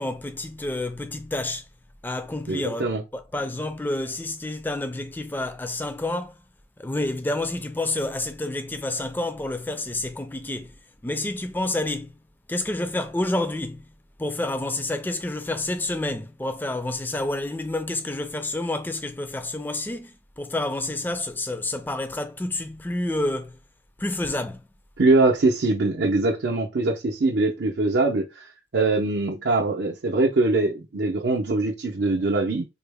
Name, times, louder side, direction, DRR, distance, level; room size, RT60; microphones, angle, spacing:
voice 1, 0.0-1.6 2.0-6.3 6.8-10.8 11.0-12.2 12.5-13.9 14.2-23.6 24.0-24.6, left 2 dB, 10° left, 0.3 m, -29 dB
voice 2, 2.5-3.0 25.0-28.5 28.7-32.6, right 2 dB, 80° right, 0.6 m, -22 dB
3.8 x 2.1 x 3.4 m
head